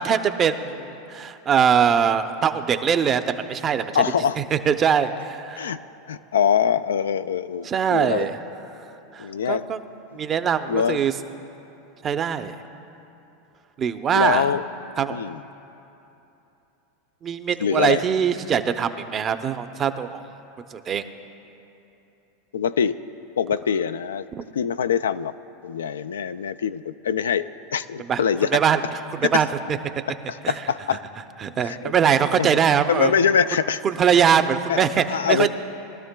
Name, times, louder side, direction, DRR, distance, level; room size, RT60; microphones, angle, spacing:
voice 1, 0.0-3.8 4.4-5.7 7.6-8.4 9.1-9.8 10.1-11.1 12.0-12.5 13.8-14.5 15.0-15.2 17.2-20.2 20.7-21.0 28.1-28.2 28.5-28.8 29.2-29.5 30.4-30.5 31.4-33.1 33.8-35.5, right 8 dB, 35° right, 9 dB, 0.6 m, -22 dB
voice 2, 3.9-4.4 5.6-5.8 6.1-8.3 9.2-9.6 10.7-11.0 14.1-14.6 15.1-15.4 17.6-18.0 22.5-23.0 23.4-24.3 24.5-25.3 25.6-28.5 29.2-29.4 30.3-31.0 31.6-31.9 32.4-32.5 32.9-33.8 34.7-35.5, left 7 dB, 90° left, 12 dB, 0.3 m, -23 dB
20.5 x 12.5 x 2.3 m, 2.9 s
hypercardioid pair, 100°, 0 cm